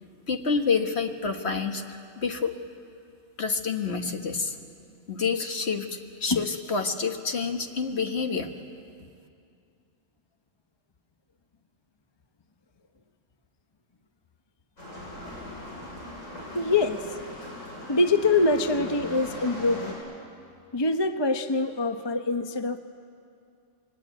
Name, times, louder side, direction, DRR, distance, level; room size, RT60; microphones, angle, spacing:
voice 1, 0.3-2.5 3.4-4.6 5.1-5.9 6.2-8.5, left 5 dB, 55° left, 5 dB, 1.8 m, -28 dB
sound 1, 14.8-19.9, left 1 dB, 80° left, 8.2 m, -39 dB
voice 2, 16.5-17.1 17.9-20.0 20.7-22.8, left 3 dB, 25° left, 7 dB, 0.8 m, -24 dB
28.0 x 22.5 x 9.3 m, 2.4 s
omnidirectional pair, 1.4 m